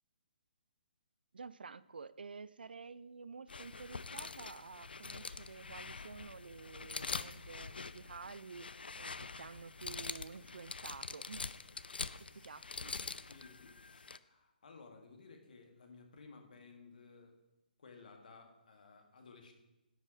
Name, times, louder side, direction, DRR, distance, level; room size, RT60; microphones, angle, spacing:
voice 1, 1.3-11.5 12.3-13.1, right 5 dB, 70° right, 17 dB, 0.3 m, -50 dB
sound 1, 3.5-14.2, left 4 dB, 70° left, 0.4 m, -45 dB
voice 2, 12.1-17.3 17.8-19.5, left 4 dB, 55° left, 3 dB, 1.6 m, -58 dB
10.0 x 5.3 x 4.9 m, 0.96 s
figure-of-eight pair, 135°, 5 cm